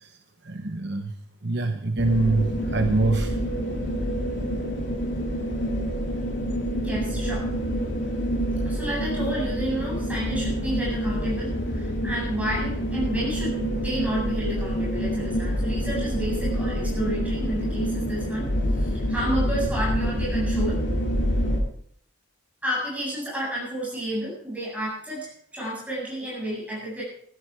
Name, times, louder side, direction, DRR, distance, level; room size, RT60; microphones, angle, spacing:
voice 1, 0.4-1.1 1.4-3.3, right 2 dB, 55° right, 6 dB, 1.0 m, -24 dB
sound 1, 2.0-21.6, equal, 55° left, 3.0 m, -27 dB
voice 2, 6.8-7.5 8.6-20.7 22.6-27.0, right 1 dB, 5° right, -5 dB, 8.0 m, -31 dB
14.5 x 13.5 x 5.0 m, 0.65 s
head